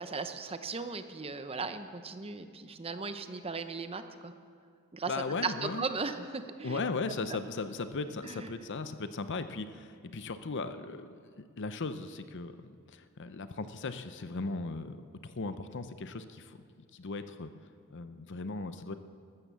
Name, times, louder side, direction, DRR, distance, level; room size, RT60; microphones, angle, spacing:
voice 1, 0.0-4.3 4.9-6.8 7.3-7.4 8.2-8.5, right 4 dB, 25° right, 9 dB, 0.7 m, -37 dB
voice 2, 5.1-5.8 6.6-11.2 11.6-15.0 15.2-16.6 16.9-17.5 17.9-18.9, left 3 dB, 55° left, 11 dB, 0.7 m, -37 dB
14.0 x 13.5 x 6.9 m, 2.1 s
head